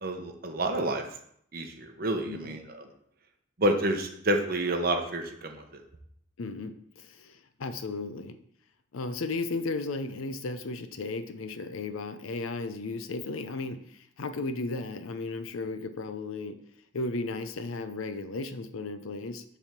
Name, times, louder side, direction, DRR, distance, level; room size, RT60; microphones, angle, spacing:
voice 1, 0.0-1.0 1.5-2.8 3.6-5.8, right 1 dB, 45° right, 4 dB, 0.9 m, -29 dB
voice 2, 2.2-2.6 6.4-8.4 8.9-16.6 16.9-19.4, left 3 dB, 85° left, 10 dB, 0.6 m, -35 dB
7.1 x 3.5 x 5.9 m, 0.69 s
head